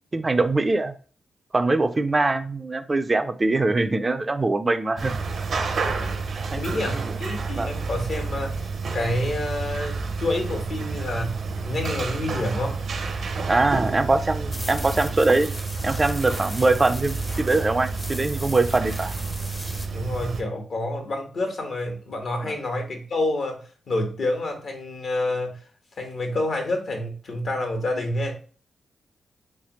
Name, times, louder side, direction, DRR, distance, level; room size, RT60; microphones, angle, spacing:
voice 1, 0.1-0.9 1.5-5.1 6.5-6.6 7.5-7.7 13.5-15.5 15.8-19.1 22.4-22.6, right 2 dB, 30° right, 9 dB, 0.4 m, -22 dB
sound 1, 5.0-20.4, right 4 dB, 65° right, 0.7 m, -30 dB
voice 2, 6.5-8.7 8.9-12.8 19.9-25.6 26.0-28.3, left 1 dB, 60° left, 3 dB, 1.1 m, -28 dB
sound 2, 14.5-19.9, left 1 dB, 15° left, 0.6 m, -39 dB
3.5 x 3.2 x 3.0 m, 0.40 s
cardioid pair, 65°, 0 cm